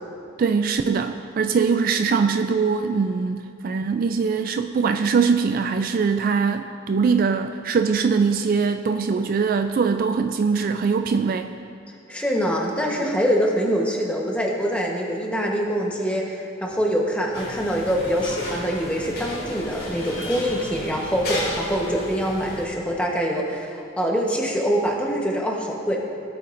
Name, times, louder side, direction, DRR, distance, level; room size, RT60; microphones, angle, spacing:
voice 1, 0.4-11.5, right 5 dB, 45° right, 7 dB, 0.3 m, -22 dB
voice 2, 12.1-26.0, equal, 5° left, -1 dB, 1.1 m, -24 dB
sound 1, 17.3-22.6, left 1 dB, 50° left, 2.7 m, -33 dB
17.5 x 8.5 x 2.6 m, 2.5 s
head